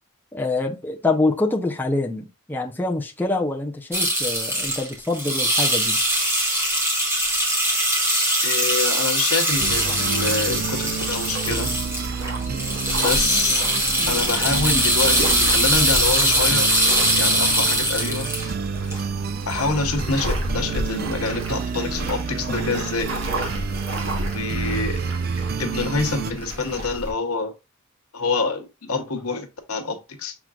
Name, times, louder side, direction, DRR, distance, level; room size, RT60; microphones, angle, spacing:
voice 1, 0.3-6.0, left 2 dB, 10° left, 0.5 m, -25 dB
sound 1, 3.9-18.5 18.9-19.0, right 1 dB, 10° right, 1.4 m, -22 dB
voice 2, 8.4-11.7 13.0-13.7 14.1-16.7 17.1-18.3 19.4-23.1 24.3-25.0 25.6-27.5 28.1-30.4, left 3 dB, 85° left, 1.0 m, -26 dB
sound 2, 9.5-27.1, right 1 dB, 65° right, 1.4 m, -32 dB
sound 3, 9.6-26.3, right 5 dB, 45° right, 0.4 m, -30 dB
5.9 x 3.7 x 2.4 m
head